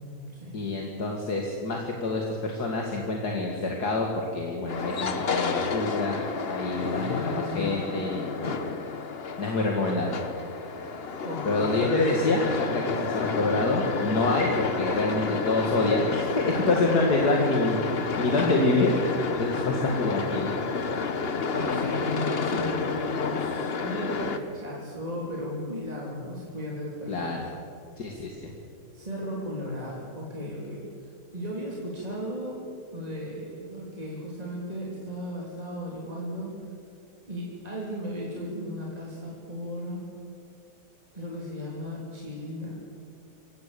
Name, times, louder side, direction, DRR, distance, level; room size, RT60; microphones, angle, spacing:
voice 1, 0.5-6.2 6.5-8.6 9.4-10.2 11.4-18.9 19.4-20.6 27.1-27.4 28.0-28.5, left 2 dB, 65° left, 0 dB, 2.5 m, -27 dB
sound 1, 4.7-24.4, left 4 dB, 40° left, 1.1 m, -30 dB
voice 2, 6.7-8.0 11.2-12.2 19.6-20.0 21.5-27.4 28.9-30.8 31.3-32.6 32.9-36.5 37.3-40.0 41.1-42.8, equal, 20° right, -4 dB, 3.3 m, -35 dB
27.0 x 16.5 x 6.9 m, 2.4 s
omnidirectional pair, 1.8 m